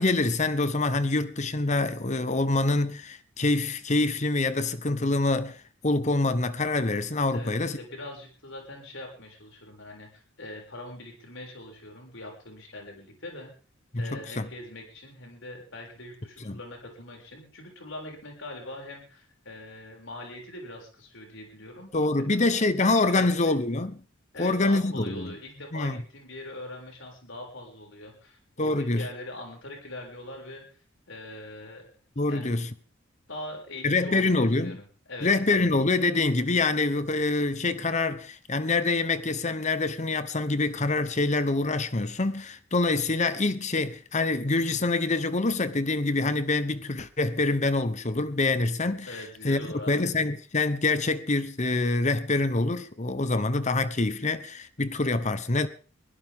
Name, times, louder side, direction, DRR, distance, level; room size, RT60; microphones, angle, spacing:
voice 1, 0.0-7.8 13.9-14.5 16.4-16.6 21.9-24.0 24.4-25.3 25.7-26.0 28.6-29.1 32.2-32.7 33.8-34.8 35.2-49.1 49.4-49.6 49.9-55.7, left 2 dB, 35° left, 1.1 m, -25 dB
voice 2, 7.3-13.5 13.9-21.9 22.3-22.4 23.1-23.5 24.3-30.6 31.1-31.9 32.3-32.5 33.3-34.7 35.1-35.3 49.0-50.0, left 1 dB, 65° left, 6.9 m, -42 dB
23.0 x 16.5 x 3.8 m
head